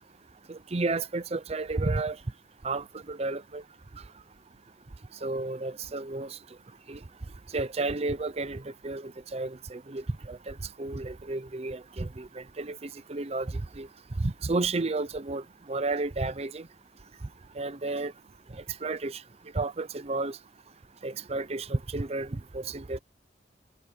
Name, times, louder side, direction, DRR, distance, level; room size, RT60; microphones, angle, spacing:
voice 1, 0.5-2.2 2.6-3.6 5.2-6.3 6.9-7.0 7.5-12.8 13.1-13.5 13.8-13.9 14.2-15.4 15.7-16.6 17.6-18.1 18.8-19.2 19.5-20.4 21.0-23.0, right 3 dB, 35° right, 0.6 m, -32 dB
head